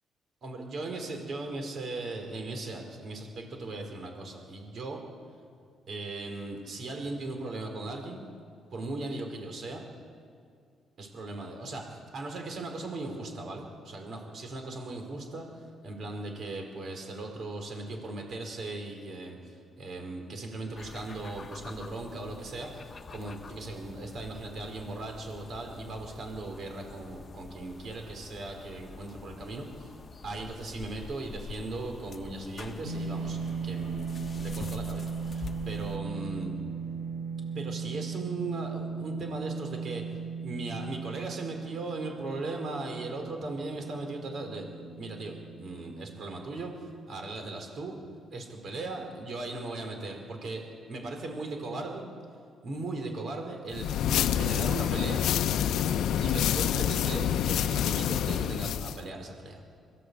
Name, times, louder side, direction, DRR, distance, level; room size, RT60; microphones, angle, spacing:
voice 1, 0.4-5.0 5.9-8.2 8.7-9.9 11.0-15.4 15.8-29.9 30.2-36.5 37.5-48.0 48.3-52.1 52.6-53.9 54.3-55.2 56.2-59.6, right 2 dB, 55° right, 3 dB, 4.7 m, -38 dB
sound 1, 20.7-36.0, left 5 dB, 40° left, 1.0 m, -46 dB
Dist Chr EMj up, 32.8-47.3, right 5 dB, 85° right, 2.0 m, -37 dB
sound 2, 53.7-59.0, left 9 dB, 80° left, 0.7 m, -27 dB
22.0 x 15.5 x 8.4 m, 2.4 s
cardioid pair, 90°, 0 cm